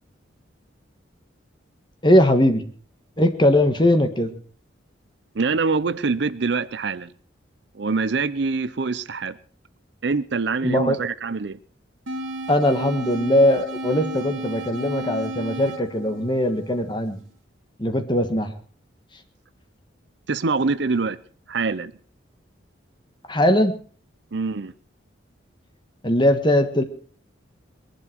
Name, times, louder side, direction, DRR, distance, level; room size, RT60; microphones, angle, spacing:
voice 1, 2.0-2.6 3.2-4.3 10.6-11.0 12.5-17.2 17.8-18.5 23.3-23.7 26.0-26.8, left 1 dB, 25° left, 1.5 m, -20 dB
voice 2, 5.3-7.1 7.7-9.4 10.0-11.6 20.3-21.2 21.5-21.9 24.3-24.7, right 4 dB, 60° right, 0.6 m, -24 dB
sound 1, 12.1-17.1, right 1 dB, 80° right, 2.0 m, -33 dB
21.5 x 11.5 x 4.6 m
head